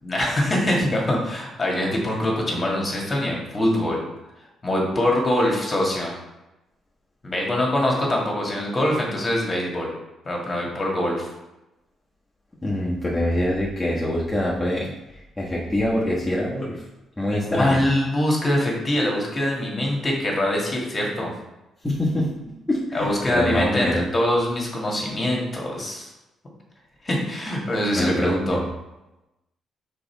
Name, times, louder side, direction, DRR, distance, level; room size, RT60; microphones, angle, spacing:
voice 1, 0.0-4.0 4.6-6.2 7.2-9.9 10.3-11.3 17.4-21.3 22.9-26.1 27.0-28.6, left 1 dB, 30° left, -1 dB, 1.9 m, -23 dB
voice 2, 12.6-14.9 15.4-16.8 17.2-17.8 21.8-22.3 22.7-24.1 27.9-28.6, left 1 dB, 10° left, -7 dB, 1.3 m, -24 dB
5.2 x 4.0 x 4.5 m, 0.97 s
cardioid pair, 90°, 0 cm